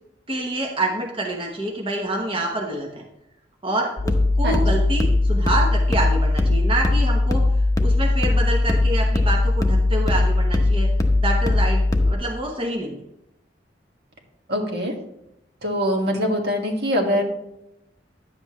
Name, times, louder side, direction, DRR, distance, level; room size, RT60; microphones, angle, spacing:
voice 1, 0.3-3.1 3.6-7.4 7.8-10.9 11.2-13.0, right 1 dB, 30° right, 0 dB, 1.0 m, -27 dB
sound 1, 4.0-12.1, left 2 dB, 20° left, 0.8 m, -19 dB
voice 2, 14.5-15.0 15.6-17.2, equal, 65° right, 1 dB, 1.6 m, -23 dB
10.5 x 7.7 x 3.0 m, 0.83 s
head